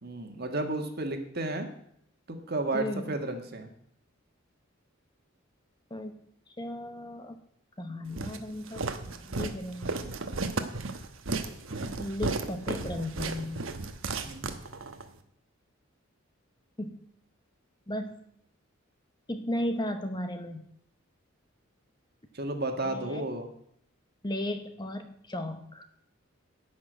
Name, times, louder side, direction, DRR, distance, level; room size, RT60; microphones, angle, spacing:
voice 1, 0.0-1.7 2.3-3.7 14.2-14.6 22.3-23.5, right 2 dB, 50° right, 5 dB, 1.6 m, -33 dB
voice 2, 2.7-3.1 5.9-6.1 6.6-7.4 7.8-10.1 11.7-13.6 16.8-17.0 17.9-18.2 19.3-20.7 22.8-23.3 24.2-25.8, left 1 dB, 20° left, 8 dB, 0.9 m, -35 dB
Walk footsteps, 8.2-15.1, right 3 dB, 75° right, 1.1 m, -34 dB
11.0 x 6.3 x 9.1 m, 0.70 s
head